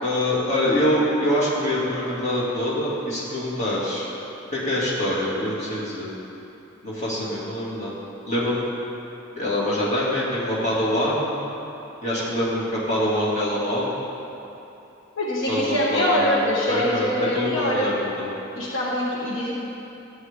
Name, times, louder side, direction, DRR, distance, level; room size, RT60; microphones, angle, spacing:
voice 1, 0.0-4.1 4.5-6.1 6.8-7.9 8.3-8.6 9.4-11.3 12.0-13.9 15.5-16.4 16.7-18.3, left 1 dB, 35° left, -8 dB, 2.6 m, -24 dB
voice 2, 15.2-17.9 18.5-19.5, equal, 75° left, -5 dB, 1.4 m, -23 dB
14.0 x 9.1 x 3.8 m, 2.9 s
head